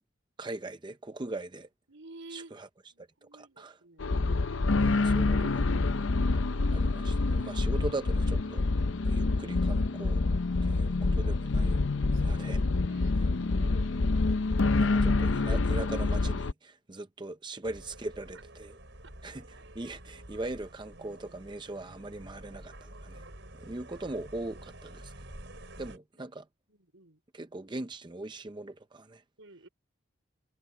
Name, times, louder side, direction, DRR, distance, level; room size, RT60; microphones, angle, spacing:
voice 1, 0.4-1.7 2.3-2.7 3.0-3.8 4.8-5.6 6.7-8.7 9.0-10.3 10.6-11.8 12.2-12.6 13.1-13.9 14.8-18.7 19.2-19.4 19.7-23.3 23.6-25.1 25.8-26.5 27.3-29.2, right 2 dB, 20° right, 0.5 m, -40 dB
voice 2, 1.9-2.6 2.9-4.2 4.8-5.5 9.0-9.4 12.1-13.7 23.7-23.9 25.9-26.3 26.7-27.2 29.4-29.7, right 2 dB, 75° right, 4.8 m, -53 dB
sound 1, 4.0-16.5, left 3 dB, 70° left, 0.7 m, -27 dB
sound 2, 17.6-26.0, right 1 dB, 60° right, 6.1 m, -49 dB
head